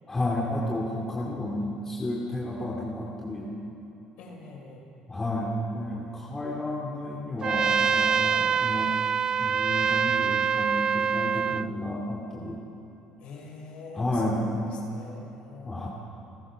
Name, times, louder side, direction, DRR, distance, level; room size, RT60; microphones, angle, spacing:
voice 1, 0.1-3.5 5.1-8.9 9.4-12.6 13.9-14.7 15.6-15.9, left 1 dB, 20° left, -4 dB, 2.6 m, -31 dB
voice 2, 4.2-4.9 8.2-8.5 13.2-15.9, left 4 dB, 70° left, 0 dB, 5.8 m, -44 dB
Trumpet, 7.4-11.7, right 6 dB, 35° right, 0.4 m, -25 dB
29.5 x 16.0 x 6.3 m, 3.0 s
cardioid pair, 115°, 2 cm